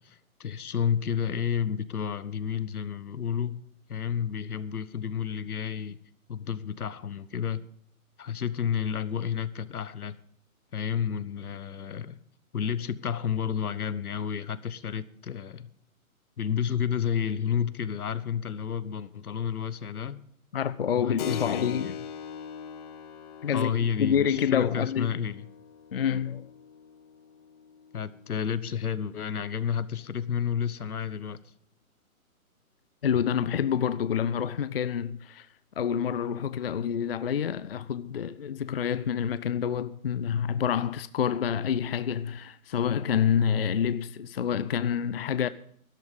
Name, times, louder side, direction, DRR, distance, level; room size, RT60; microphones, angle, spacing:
voice 1, 0.0-3.6 3.9-6.0 6.3-7.6 8.2-10.1 10.7-12.2 12.5-15.7 16.4-20.2 21.0-22.0 23.5-25.4 27.9-31.4, left 8 dB, 80° left, 1.2 m, -31 dB
voice 2, 20.5-21.9 23.4-23.7 24.0-25.1 25.9-26.5 33.0-35.5 35.8-45.5, left 8 dB, 45° left, 0.5 m, -27 dB
Keyboard (musical), 21.2-29.4, left 8 dB, 25° left, 1.6 m, -41 dB
13.0 x 12.0 x 5.3 m
hypercardioid pair, 155°, 43 cm